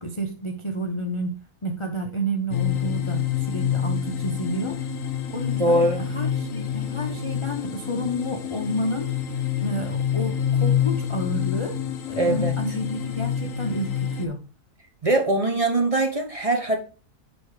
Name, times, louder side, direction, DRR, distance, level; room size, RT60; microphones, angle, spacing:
voice 1, 0.0-1.3 1.6-4.8 5.3-9.2 9.6-11.8 12.1-14.4, equal, 45° left, 0.4 m, -30 dB
sound 1, 2.5-14.3, left 9 dB, 60° left, 1.1 m, -27 dB
voice 2, 5.6-6.1 12.2-12.5 15.0-16.8, right 2 dB, 30° right, 0.8 m, -22 dB
9.2 x 3.6 x 4.7 m
omnidirectional pair, 1.7 m